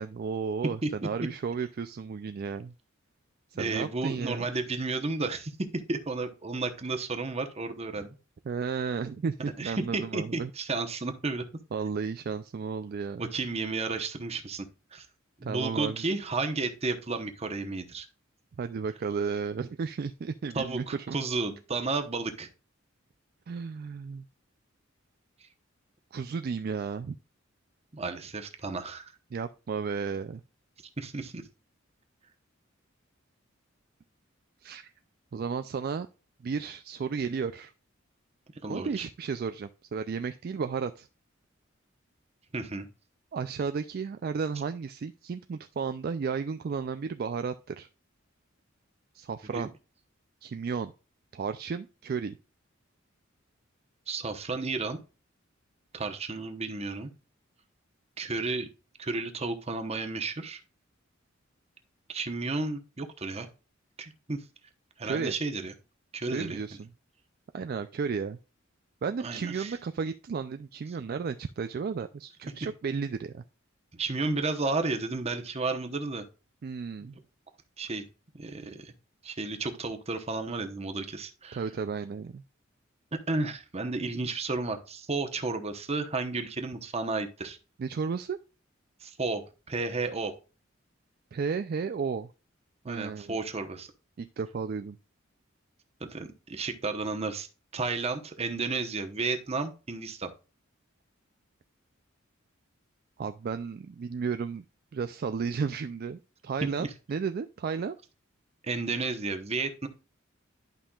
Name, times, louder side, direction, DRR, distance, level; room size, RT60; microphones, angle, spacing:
voice 1, 0.0-2.7 3.5-4.5 8.5-10.5 11.7-13.3 15.4-16.0 18.6-21.2 23.5-24.3 26.1-27.2 29.3-30.4 34.6-34.9 35.3-36.1 36.4-37.7 38.7-41.1 43.3-47.9 49.1-49.7 50.4-50.9 51.3-52.4 65.0-65.3 66.3-66.9 67.5-68.4 69.0-73.4 76.6-77.2 81.5-82.4 87.8-88.4 91.3-92.3 92.9-93.4 94.2-95.0 103.2-104.6 104.9-108.0, right 5 dB, 50° right, 10 dB, 0.3 m, -33 dB
voice 2, 3.5-8.1 9.6-11.4 13.2-15.1 15.4-18.1 20.5-22.5 25.4-25.5 27.9-29.0 31.0-31.4 38.6-39.1 42.5-42.9 49.5-49.7 54.1-55.0 55.9-57.1 58.2-58.7 59.0-60.6 62.1-63.5 64.0-64.4 65.0-65.7 66.1-66.6 69.2-69.8 74.0-76.2 77.0-77.1 77.8-78.0 78.4-78.9 79.2-81.6 83.3-87.6 89.0-90.3 92.8-93.9 96.0-97.5 97.7-100.3 106.8-106.9 108.6-109.9, right 3 dB, 30° right, 6 dB, 1.0 m, -32 dB
11.5 x 5.4 x 2.3 m, 0.33 s
head